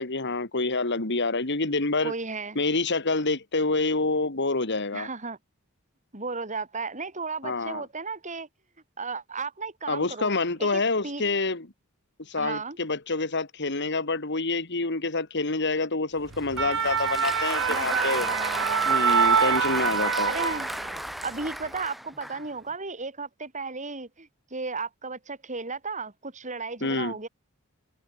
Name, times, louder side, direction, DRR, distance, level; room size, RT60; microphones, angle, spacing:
voice 1, 0.0-2.1 2.6-5.1 7.4-7.8 9.9-11.7 12.2-18.3 18.9-20.3 26.8-27.1, left 3 dB, 55° left, 2.5 m, -27 dB
voice 2, 2.0-2.6 4.9-5.4 6.1-8.5 9.0-10.3 10.6-11.2 12.4-12.8 17.7-18.9 20.3-20.7 21.2-27.3, right 4 dB, 35° right, 6.0 m, -34 dB
Applause, 16.3-22.5, equal, ahead, 1.7 m, -34 dB
sound 1, 16.3-21.1 21.4-21.7, right 6 dB, 65° right, 1.4 m, -25 dB
head